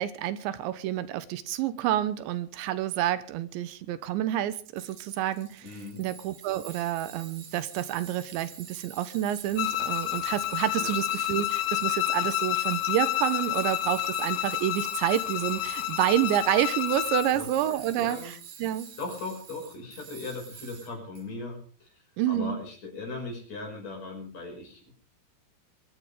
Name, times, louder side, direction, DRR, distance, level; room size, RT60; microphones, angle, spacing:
voice 1, 0.0-5.6 6.0-18.9 22.2-22.6, right 12 dB, 85° right, 13 dB, 3.3 m, -29 dB
Tools, 4.8-21.2, right 7 dB, 55° right, 3.7 m, -46 dB
voice 2, 5.6-6.0 10.8-11.0 17.3-17.5 17.8-18.3 19.0-24.9, left 3 dB, 40° left, 1 dB, 6.8 m, -39 dB
Bowed string instrument, 9.6-17.3, left 16 dB, 80° left, 3.3 m, -29 dB
23.5 x 11.5 x 5.0 m, 0.41 s
omnidirectional pair, 5.1 m